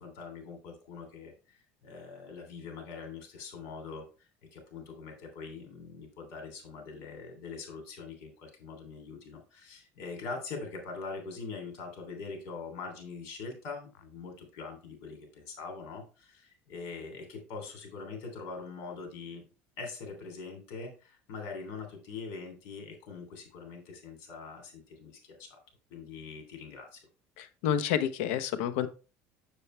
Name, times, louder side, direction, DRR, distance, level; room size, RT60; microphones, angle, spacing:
voice 1, 0.0-1.3 1.8-19.4 19.8-25.6 25.9-27.0, left 4 dB, 65° left, 4 dB, 3.1 m, -43 dB
voice 2, 27.4-28.9, left 9 dB, 85° left, 12 dB, 0.9 m, -29 dB
7.1 x 6.9 x 3.3 m, 0.33 s
cardioid pair, 160°, 6 cm